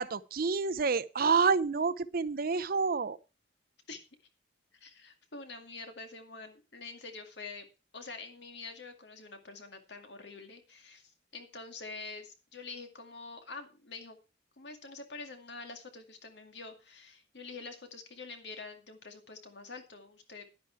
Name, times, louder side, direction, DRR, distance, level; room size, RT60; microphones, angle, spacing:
voice 1, 0.0-3.2, right 5 dB, 55° right, 0.6 m, -28 dB
voice 2, 4.8-7.7 7.9-14.2 14.6-20.4, left 3 dB, 65° left, 2.3 m, -46 dB
11.0 x 10.5 x 4.6 m
head